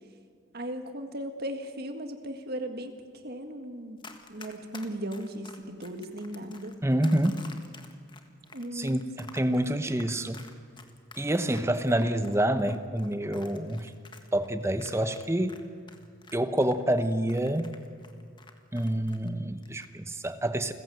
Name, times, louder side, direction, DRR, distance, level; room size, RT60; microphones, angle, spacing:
voice 1, 0.5-2.9 3.2-4.0 4.3-6.8 8.5-9.0, right 1 dB, 50° right, 7 dB, 1.9 m, -37 dB
Run, 4.0-15.6 15.9-19.3 19.6-19.9, left 4 dB, 25° left, 1.6 m, -50 dB
voice 2, 6.8-7.4 8.7-10.4 11.2-13.9 14.3-15.6 16.3-17.7 18.7-20.7, right 1 dB, 15° right, 10 dB, 0.9 m, -27 dB
29.0 x 15.0 x 7.9 m, 2.2 s
head